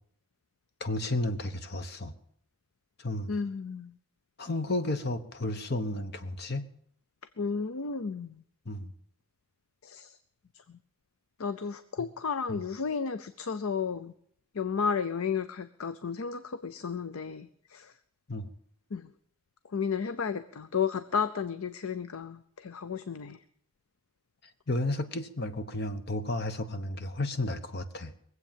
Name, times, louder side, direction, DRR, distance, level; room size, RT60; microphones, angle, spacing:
voice 1, 0.8-2.1 3.0-3.3 4.4-6.7 8.7-8.9 12.5-12.6 18.3-18.5 24.7-28.1, left 2 dB, 50° left, 10 dB, 1.0 m, -32 dB
voice 2, 3.3-3.9 7.4-8.4 9.8-10.2 11.4-14.1 14.5-17.9 18.9-19.1 19.7-23.4, left 6 dB, 85° left, 12 dB, 0.6 m, -33 dB
21.5 x 8.0 x 7.4 m, 0.66 s
head